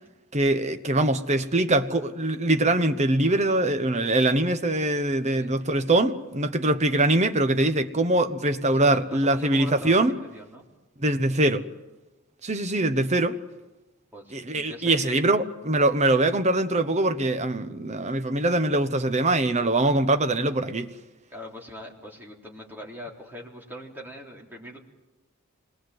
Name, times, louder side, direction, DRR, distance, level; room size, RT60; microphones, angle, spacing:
voice 1, 0.3-10.1 11.0-11.6 12.4-13.4 14.3-20.9, right 2 dB, 30° right, 1.1 m, -23 dB
voice 2, 8.7-10.6 14.1-15.3 21.3-24.8, left 1 dB, 10° right, 3.8 m, -41 dB
26.0 x 21.0 x 7.9 m
head